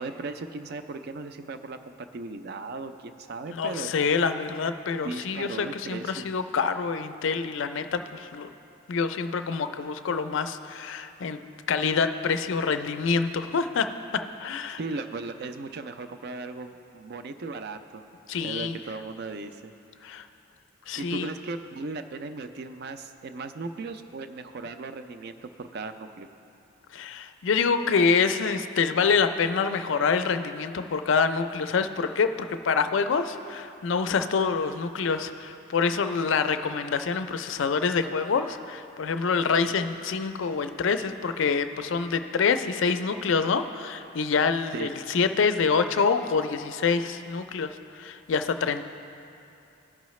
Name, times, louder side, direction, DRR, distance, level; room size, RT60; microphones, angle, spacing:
voice 1, 0.0-3.9 5.0-6.3 14.8-18.0 18.4-19.7 21.0-26.3 44.7-44.9, right 3 dB, 50° right, 9 dB, 0.4 m, -37 dB
voice 2, 3.5-8.5 8.9-11.4 11.7-13.9 14.4-14.8 18.3-18.8 20.0-20.3 20.9-21.3 26.9-48.8, left 5 dB, 65° left, 9 dB, 0.4 m, -26 dB
16.5 x 5.6 x 3.1 m, 2.7 s
head